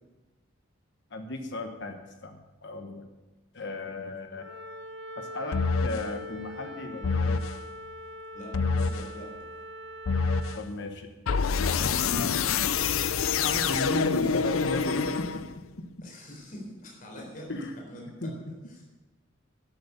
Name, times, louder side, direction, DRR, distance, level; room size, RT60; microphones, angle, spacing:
voice 1, 1.1-3.1 3.5-4.4 5.2-7.4 10.5-11.1 11.8-12.4 13.3-15.3 17.5-17.7 18.2-18.3, left 2 dB, 60° left, 5 dB, 1.2 m, -35 dB
Wind instrument woodwind instrument, 4.3-10.6, left 1 dB, 60° right, 1.2 m, -42 dB
sound 1, 5.5-6.1 7.0-7.6 8.5-9.1 10.1-10.6 11.3-15.7, left 5 dB, 85° left, 0.5 m, -26 dB
voice 2, 8.3-9.3 16.0-18.3 18.7-18.8, left 1 dB, 45° left, -1 dB, 4.1 m, -44 dB
13.0 x 8.1 x 7.0 m, 1.1 s
head